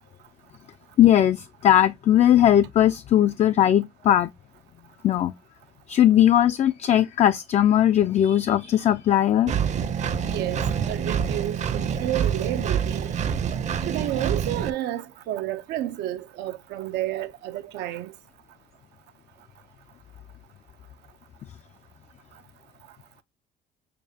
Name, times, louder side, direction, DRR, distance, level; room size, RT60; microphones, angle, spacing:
voice 1, 1.0-4.3 5.0-5.3 5.9-9.5, left 11 dB, 40° left, 0.3 m, -19 dB
Engine, 9.5-14.7, right 7 dB, 45° right, 0.6 m, -26 dB
voice 2, 10.3-13.1 13.9-18.1, right 13 dB, 85° right, 0.6 m, -31 dB
6.6 x 2.3 x 2.7 m
cardioid pair, 110°, 17 cm